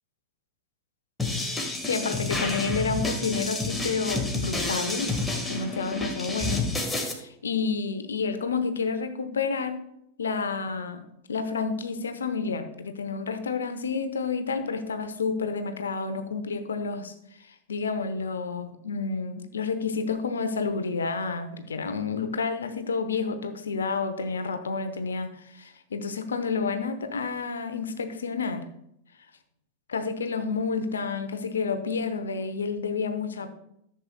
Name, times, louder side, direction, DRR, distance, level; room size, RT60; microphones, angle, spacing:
sound 1, 1.2-7.1, left 2 dB, 10° left, 1.5 m, -29 dB
voice 1, 1.8-5.1 5.5-9.8 10.2-11.0 11.3-17.1 17.4-28.7 29.9-33.5, left 5 dB, 70° left, 9 dB, 0.9 m, -30 dB
14.0 x 7.6 x 2.3 m, 0.76 s
figure-of-eight pair, 90°, 0 cm